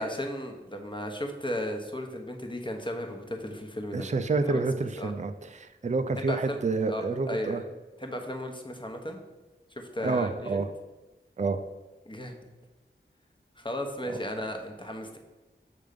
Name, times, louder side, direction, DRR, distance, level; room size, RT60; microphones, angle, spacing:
voice 1, 0.0-4.1 4.4-4.6 5.0-5.1 6.2-6.6 6.9-7.0 7.3-7.6 8.0-9.2 9.8-10.7 12.1-12.3 13.6-15.2, left 1 dB, 25° left, 4 dB, 0.9 m, -35 dB
voice 2, 3.9-7.6 10.0-10.7 11.4-11.6 14.1-14.2, right 3 dB, 35° right, 9 dB, 0.4 m, -28 dB
6.6 x 3.5 x 5.1 m, 1.2 s
wide cardioid pair, 50°, 20 cm